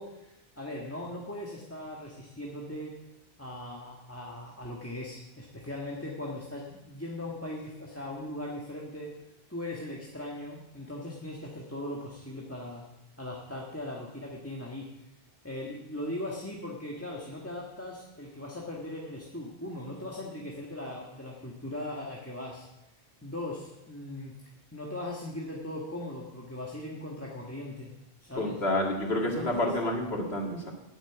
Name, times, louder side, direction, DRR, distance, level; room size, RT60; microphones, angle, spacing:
voice 1, 0.0-2.9 3.4-9.1 9.5-12.8 13.2-14.9 15.4-22.7 23.2-24.3 24.7-27.9 28.2-28.6 29.2-29.7, left 1 dB, 15° left, -3 dB, 1.6 m, -39 dB
voice 2, 28.4-30.7, left 1 dB, 85° left, -1 dB, 2.4 m, -29 dB
9.1 x 8.8 x 9.1 m, 0.94 s
omnidirectional pair, 1.0 m